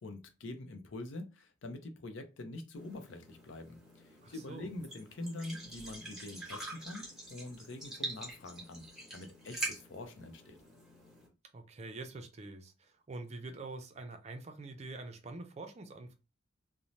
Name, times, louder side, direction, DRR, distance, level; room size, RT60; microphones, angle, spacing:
voice 1, 0.0-3.8 4.0-8.8 9.1-10.6, left 2 dB, 75° left, 0.5 m, -45 dB
sound 1, 2.8-11.3, right 2 dB, ahead, 1.0 m, -45 dB
voice 2, 4.2-4.7 11.5-16.1, right 2 dB, 35° right, 0.4 m, -45 dB
2.6 x 2.1 x 3.0 m
head